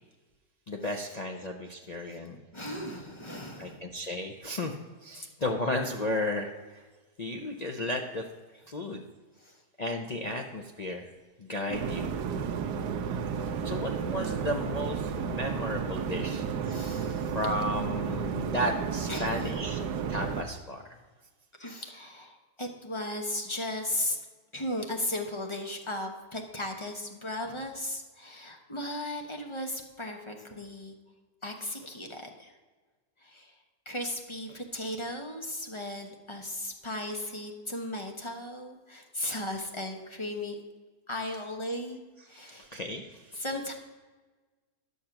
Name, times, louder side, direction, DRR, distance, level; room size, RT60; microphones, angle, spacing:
voice 1, 0.7-2.4 3.6-4.7 5.0-6.8 7.2-8.3 8.7-9.0 9.8-11.1 11.4-12.1 13.6-16.5 17.3-19.8 20.1-20.8 42.4-43.4, left 1 dB, 55° left, 1 dB, 0.4 m, -33 dB
voice 2, 2.5-3.9 5.2-5.3 9.4-9.6 13.3-13.4 16.6-17.4 19.1-19.9 21.6-24.2 24.5-31.0 31.4-32.5 33.2-33.5 33.9-40.6 41.1-42.0 42.3-42.7 43.3-43.7, left 1 dB, 25° left, 3 dB, 0.8 m, -36 dB
sound 1, 11.7-20.4, right 6 dB, 85° right, 1.3 m, -32 dB
11.0 x 6.4 x 5.8 m, 1.3 s
omnidirectional pair, 1.7 m